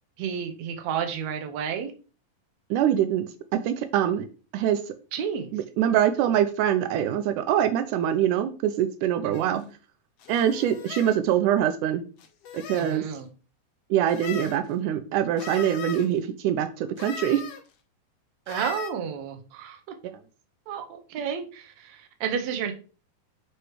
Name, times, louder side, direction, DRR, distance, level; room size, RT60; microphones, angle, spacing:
voice 1, 0.2-1.9 5.1-5.5 9.2-9.7 12.7-13.3 18.5-19.8 20.7-22.7, right 7 dB, 70° right, 1.8 m, -31 dB
voice 2, 2.7-3.2 3.5-4.3 4.5-4.8 5.5-9.6 10.3-12.0 12.5-13.0 13.9-17.4, right 10 dB, 90° right, 1.8 m, -24 dB
sound 1, 9.3-9.5 10.2-11.2 12.2-13.0 14.1-14.6 15.4-16.1 17.0-17.6 18.5-18.9, left 8 dB, 85° left, 1.4 m, -39 dB
7.9 x 3.0 x 4.7 m
omnidirectional pair, 4.2 m